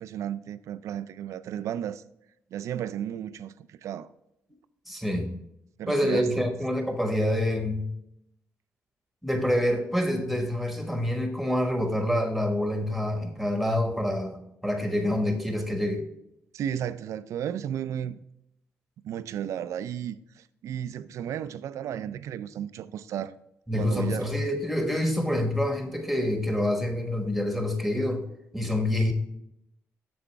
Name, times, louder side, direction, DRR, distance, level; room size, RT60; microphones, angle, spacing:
voice 1, 0.0-2.0 2.5-4.1 5.8-6.5 16.5-18.2 19.0-23.3 23.7-24.3, right 10 dB, 75° right, 0.4 m, -34 dB
voice 2, 4.9-5.4 5.9-7.9 9.2-16.0 23.7-28.2 28.5-29.1, left 1 dB, ahead, 1.5 m, -27 dB
7.5 x 6.9 x 3.5 m
cardioid pair, 105°, 5 cm